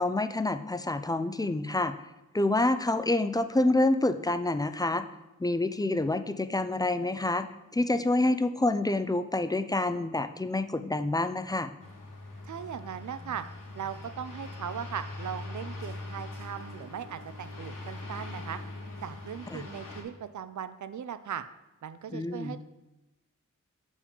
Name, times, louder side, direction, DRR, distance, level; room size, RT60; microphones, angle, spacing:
voice 1, 0.0-1.9 2.3-5.0 5.4-7.5 7.7-11.7 19.5-19.6 22.1-22.5, left 2 dB, 15° left, 10 dB, 0.3 m, -27 dB
sound 1, 11.8-20.0, left 2 dB, 85° left, 1.4 m, -42 dB
voice 2, 12.4-13.5 13.7-18.6 19.0-21.4 21.8-22.6, right 8 dB, 70° right, 11 dB, 0.5 m, -38 dB
6.8 x 5.0 x 5.2 m, 1.0 s
wide cardioid pair, 90°, 31 cm